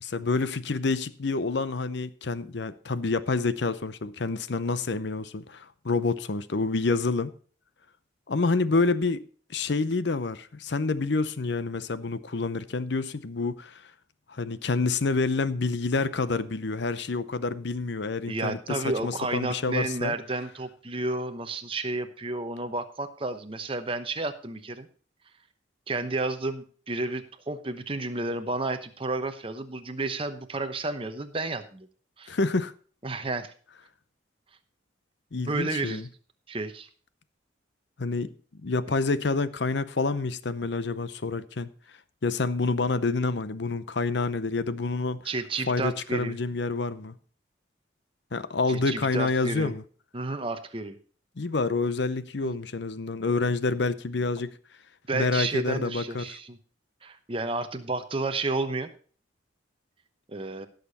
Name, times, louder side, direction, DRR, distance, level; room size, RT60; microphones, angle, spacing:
voice 1, 0.0-7.3 8.3-9.2 9.5-13.8 14.3-20.1 32.3-32.7 35.3-36.0 38.0-38.3 38.6-41.7 42.2-45.2 45.7-47.1 48.3-49.8 51.4-54.5 55.1-56.4, left 3 dB, 60° left, 0.7 m, -28 dB
voice 2, 18.3-24.9 25.9-31.9 32.2-32.4 33.0-33.5 35.3-36.0 36.5-36.9 45.2-46.3 48.7-49.7 50.1-51.0 52.4-52.6 55.1-56.6 57.0-58.9 60.3-60.7, right 2 dB, 30° right, 0.9 m, -31 dB
16.5 x 6.7 x 4.1 m
head